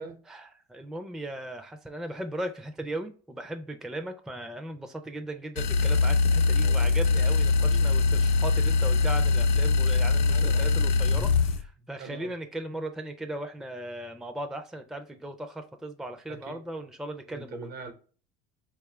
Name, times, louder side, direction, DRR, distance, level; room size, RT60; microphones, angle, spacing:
voice 1, 0.2-17.6, right 1 dB, ahead, 0.4 m, -37 dB
sound 1, 5.6-11.6, left 4 dB, 90° left, 0.5 m, -22 dB
voice 2, 6.6-7.0 7.6-7.9 10.3-10.7 12.0-12.3 17.3-17.9, right 4 dB, 60° right, 0.9 m, -42 dB
4.1 x 2.4 x 3.2 m
supercardioid pair, 100°, 18 cm